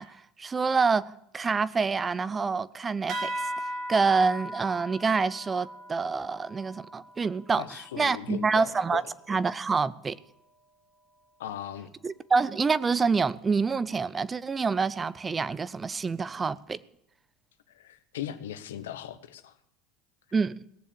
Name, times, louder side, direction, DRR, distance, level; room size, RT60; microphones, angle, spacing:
voice 1, 0.0-3.3 3.9-7.6 8.0-9.0 9.3-10.2 12.0-16.8 20.3-20.6, right 4 dB, 25° right, 18 dB, 0.6 m, -27 dB
sound 1, 3.1-8.0, right 1 dB, 55° right, 2.5 m, -38 dB
voice 2, 7.6-9.0 11.4-11.9 17.7-19.5, left 10 dB, 85° left, 11 dB, 1.0 m, -38 dB
18.0 x 7.3 x 7.0 m, 0.76 s
hypercardioid pair, 85°, 0 cm